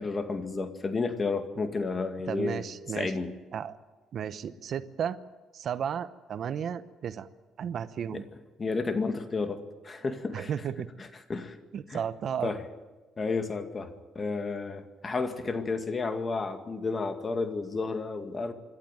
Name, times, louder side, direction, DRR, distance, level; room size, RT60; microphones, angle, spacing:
voice 1, 0.0-2.7 2.9-3.3 8.1-8.2 8.6-10.5 11.0-11.6 11.9-12.0 12.4-12.6 13.2-18.5, left 4 dB, 30° left, 7 dB, 2.1 m, -31 dB
voice 2, 2.3-3.1 3.5-3.8 4.1-5.2 5.5-7.3 7.6-8.2 10.3-10.9 11.7-12.5, right 8 dB, 55° right, 13 dB, 0.9 m, -33 dB
27.0 x 12.0 x 9.2 m, 1.3 s
cardioid pair, 100°, 0 cm